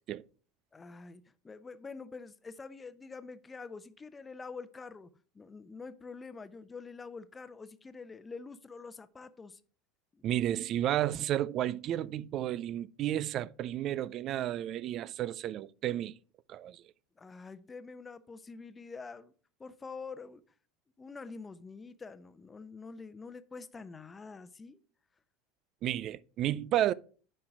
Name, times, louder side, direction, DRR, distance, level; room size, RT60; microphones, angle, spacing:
voice 1, 0.7-5.1 5.3-9.6 10.1-10.2 17.2-19.3 19.6-20.4 21.0-24.8, left 4 dB, 20° left, 0.8 m, -46 dB
voice 2, 10.2-16.1 16.5-16.8 25.8-26.9, right 12 dB, 50° right, 0.4 m, -32 dB
9.8 x 4.5 x 4.9 m
hypercardioid pair, 80°, 0 cm